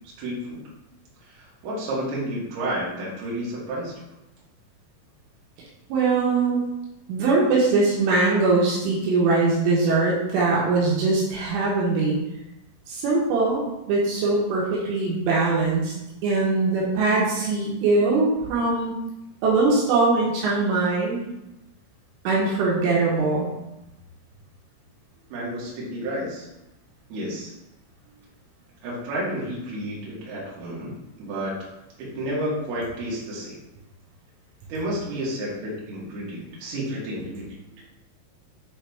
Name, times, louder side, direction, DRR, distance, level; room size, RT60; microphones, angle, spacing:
voice 1, 0.2-0.7 1.2-3.9 25.3-26.5 27.1-27.5 28.8-31.6 32.0-33.6 34.7-37.5, right 1 dB, 60° right, -5 dB, 3.1 m, -31 dB
voice 2, 5.9-6.6 7.1-12.2 12.9-13.6 13.9-15.9 16.2-18.9 19.4-21.2 22.3-23.5, right 3 dB, 80° right, -4 dB, 3.5 m, -21 dB
8.0 x 3.4 x 3.5 m, 0.92 s
omnidirectional pair, 5.7 m